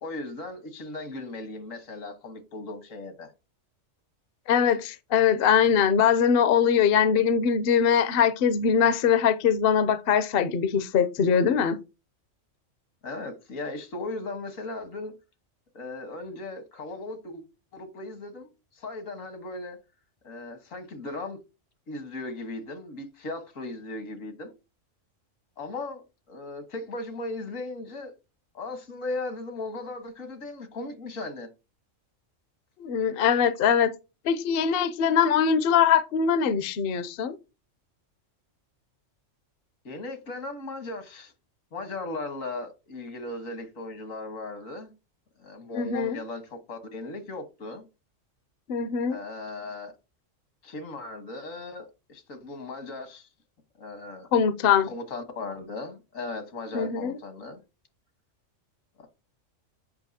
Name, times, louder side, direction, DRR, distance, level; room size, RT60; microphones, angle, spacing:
voice 1, 0.0-3.3 13.0-15.1 15.7-17.4 17.7-19.8 20.2-21.4 21.9-24.5 25.6-28.1 28.5-31.5 39.9-41.3 41.7-44.9 45.4-47.9 49.1-49.9 50.6-53.3 53.8-54.3 54.9-57.6 59.0-59.1, left 2 dB, 80° left, 1.7 m, -37 dB
voice 2, 4.5-11.8 32.8-33.9 34.2-37.4 45.7-46.2 48.7-49.2 54.3-54.9 56.7-57.2, left 7 dB, 55° left, 0.7 m, -22 dB
8.1 x 5.5 x 2.7 m
omnidirectional pair, 1.3 m